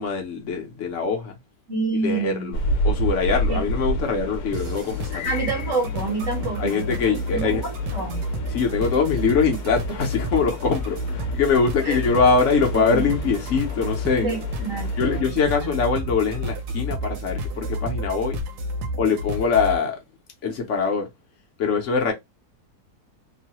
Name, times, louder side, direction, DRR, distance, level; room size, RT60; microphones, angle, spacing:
voice 1, 0.0-1.3 2.0-2.6 2.8-5.3 6.6-7.6 8.5-14.3 15.0-18.4 19.0-20.0 20.4-21.1 21.6-22.1, left 5 dB, 60° left, 0.9 m, -23 dB
voice 2, 1.7-2.5 3.5-3.6 5.2-8.2 11.8-12.0 12.7-13.1 14.2-15.7, right 3 dB, 55° right, 1.2 m, -28 dB
sound 1, 2.5-15.2, equal, 75° left, 1.1 m, -31 dB
sound 2, 4.5-19.8, left 1 dB, 90° right, 1.2 m, -31 dB
sound 3, 7.0-18.4, right 5 dB, 40° left, 0.5 m, -36 dB
3.0 x 2.1 x 2.8 m
omnidirectional pair, 1.8 m